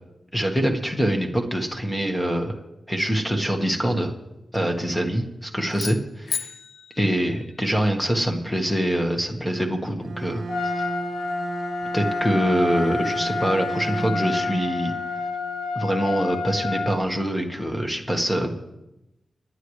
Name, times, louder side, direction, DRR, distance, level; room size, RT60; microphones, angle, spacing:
voice 1, 0.3-2.6 2.9-4.1 4.5-6.5 7.0-10.4 10.8-10.9 11.9-14.9 15.7-18.6, equal, 5° left, 3 dB, 1.4 m, -24 dB
sound 1, 5.7-8.0, left 6 dB, 55° left, 0.6 m, -35 dB
Bowed string instrument, 10.0-16.0, right 3 dB, 60° right, 1.0 m, -34 dB
Trumpet, 10.5-17.0, left 4 dB, 85° left, 3.7 m, -29 dB
27.5 x 9.8 x 3.2 m, 0.93 s
wide cardioid pair, 175°, 0 cm